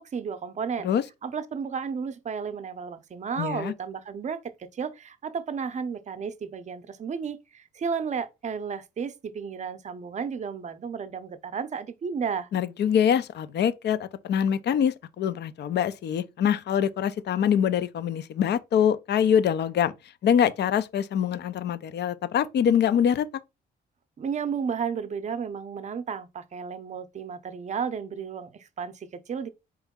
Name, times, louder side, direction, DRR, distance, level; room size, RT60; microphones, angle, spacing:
voice 1, 0.0-0.9 1.2-12.5 24.2-29.5, right 6 dB, 35° right, 0.6 m, -33 dB
voice 2, 3.4-3.7 12.5-19.9 20.2-23.3, left 8 dB, 60° left, 0.5 m, -24 dB
4.4 x 3.1 x 3.6 m
cardioid pair, 90°, 20 cm